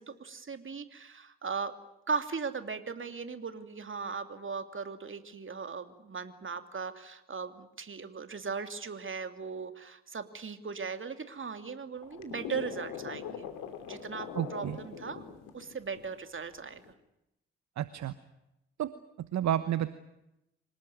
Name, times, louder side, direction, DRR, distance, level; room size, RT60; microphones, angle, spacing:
voice 1, 0.0-1.7 2.1-13.4 13.9-15.2 15.5-16.8, right 5 dB, 35° right, 9 dB, 2.9 m, -38 dB
sound 1, 11.9-16.1 16.6-16.9, left 7 dB, 75° left, 2.9 m, -42 dB
voice 2, 14.3-14.8 17.8-18.1 18.8-18.9 19.3-19.9, right 11 dB, 55° right, 14 dB, 1.2 m, -30 dB
26.5 x 19.0 x 9.4 m, 0.88 s
hypercardioid pair, 40°, 33 cm